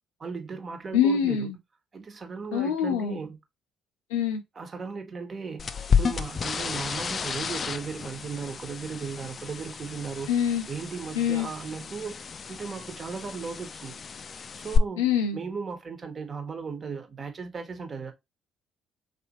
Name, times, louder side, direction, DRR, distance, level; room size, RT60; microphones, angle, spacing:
voice 1, 0.2-1.5 1.9-3.4 4.6-10.3 10.7-14.0 14.6-15.0 15.3-18.1, right 5 dB, 40° right, 1.2 m, -36 dB
voice 2, 0.9-1.6 2.5-3.2 4.1-4.4 10.3-10.6 11.1-11.5 15.0-15.4, left 8 dB, 85° left, 0.7 m, -25 dB
sound 1, 5.6-14.8, left 6 dB, 45° left, 0.4 m, -31 dB
4.1 x 3.0 x 3.0 m
hypercardioid pair, 55°, 0 cm